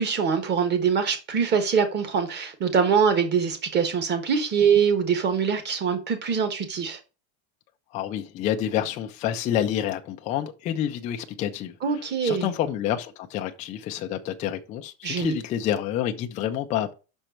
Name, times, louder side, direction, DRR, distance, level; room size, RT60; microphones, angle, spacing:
voice 1, 0.0-7.0 11.8-12.5 15.0-15.3, right 6 dB, 25° right, 1.3 m, -23 dB
voice 2, 7.9-11.8 12.2-16.9, left 10 dB, 20° left, 0.3 m, -28 dB
6.1 x 4.4 x 6.4 m
cardioid pair, 165°, 42 cm